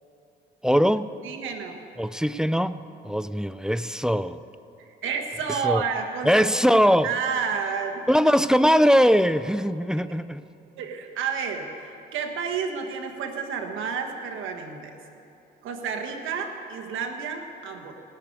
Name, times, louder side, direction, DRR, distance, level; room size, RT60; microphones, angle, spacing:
voice 1, 0.6-1.1 2.0-4.4 5.6-5.8 6.2-7.1 8.1-10.4, equal, 5° right, 14 dB, 0.4 m, -21 dB
voice 2, 1.2-1.8 4.8-8.0 10.8-15.0 15.6-17.9, right 6 dB, 85° right, 4 dB, 1.4 m, -30 dB
17.5 x 6.7 x 9.5 m, 2.8 s
cardioid pair, 90°, 20 cm